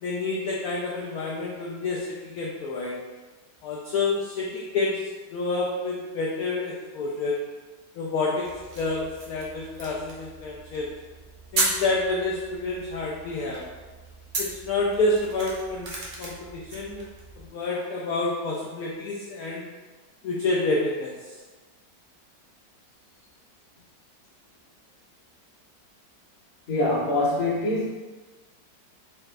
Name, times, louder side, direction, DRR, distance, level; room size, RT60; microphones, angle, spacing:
voice 1, 0.0-3.0 3.6-7.5 7.9-10.9 11.5-13.7 14.4-15.9 16.2-17.1 17.4-19.7 20.2-21.4, left 2 dB, 70° left, -3 dB, 0.9 m, -28 dB
sound 1, 8.4-17.5, right 2 dB, 75° right, 0.4 m, -35 dB
voice 2, 26.7-27.9, left 2 dB, 40° left, -6 dB, 0.8 m, -24 dB
4.2 x 2.4 x 3.2 m, 1.3 s
omnidirectional pair, 1.9 m